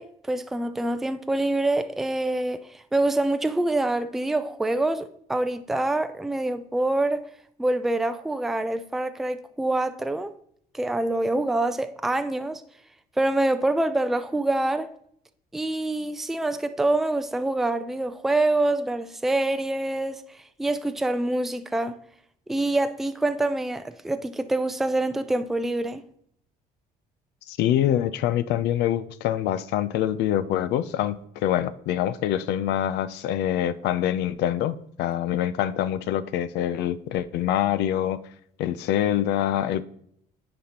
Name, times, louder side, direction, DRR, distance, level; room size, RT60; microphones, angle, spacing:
voice 1, 0.0-7.3 7.6-10.3 10.7-12.6 13.2-14.9 15.5-20.2 20.6-22.0 22.5-26.0, right 2 dB, ahead, 0.3 m, -25 dB
voice 2, 27.5-38.2 38.6-39.8, left 11 dB, 85° left, 0.5 m, -25 dB
9.4 x 4.2 x 2.9 m
cardioid pair, 110°, 17 cm